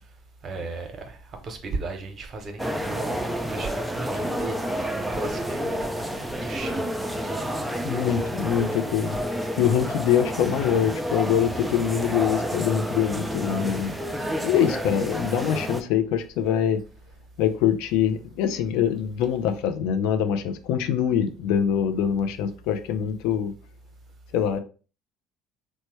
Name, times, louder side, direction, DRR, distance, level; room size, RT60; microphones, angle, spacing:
voice 1, 0.4-6.8 7.1-7.7, right 3 dB, 45° right, 0.9 m, -36 dB
sound 1, 2.6-15.8, equal, 5° right, 0.5 m, -29 dB
voice 2, 7.8-9.2 9.6-16.8 17.4-23.5 24.3-24.6, left 9 dB, 70° left, 0.4 m, -24 dB
3.0 x 2.1 x 3.1 m
hypercardioid pair, 65°, 0 cm